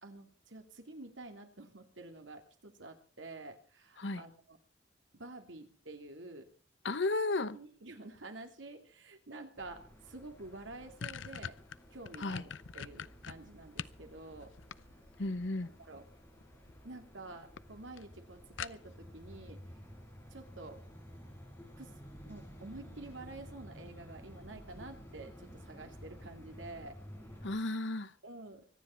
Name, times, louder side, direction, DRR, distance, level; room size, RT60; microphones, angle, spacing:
voice 1, 0.0-4.6 5.1-6.5 7.4-11.6 11.9-14.5 15.8-16.0 16.8-19.6 20.3-20.8 21.8-21.9 22.3-27.0 28.2-28.7, right 2 dB, 80° right, 2.8 m, -49 dB
voice 2, 6.8-7.6 12.2-12.4 15.2-15.7 27.4-28.1, left 2 dB, 70° left, 1.1 m, -33 dB
sound 1, 9.6-27.5, equal, 10° left, 6.7 m, -53 dB
sound 2, 10.1-10.2 10.5-14.0 14.4-15.3 16.4-16.8 17.1-17.2 17.6-17.7 18.0-18.1 18.6-19.1, left 7 dB, 90° left, 0.6 m, -43 dB
24.5 x 10.0 x 4.5 m
head